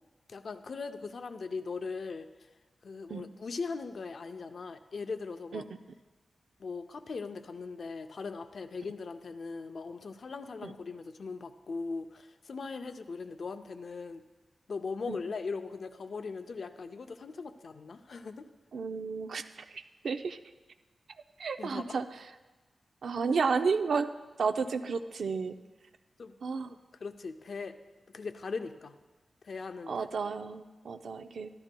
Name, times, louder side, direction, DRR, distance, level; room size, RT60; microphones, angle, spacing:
voice 1, 0.3-2.3 2.8-5.7 6.6-14.2 14.7-18.5 21.6-22.0 26.2-26.3 26.7-27.8 28.1-29.0 29.4-30.0, left 4 dB, 55° left, 8 dB, 0.5 m, -39 dB
voice 2, 18.7-20.4 21.4-22.2 23.0-24.1 24.4-25.5 26.4-26.7 29.9-31.5, right 5 dB, 75° right, 8 dB, 0.4 m, -32 dB
13.5 x 11.5 x 2.2 m, 1.2 s
wide cardioid pair, 160°, 0 cm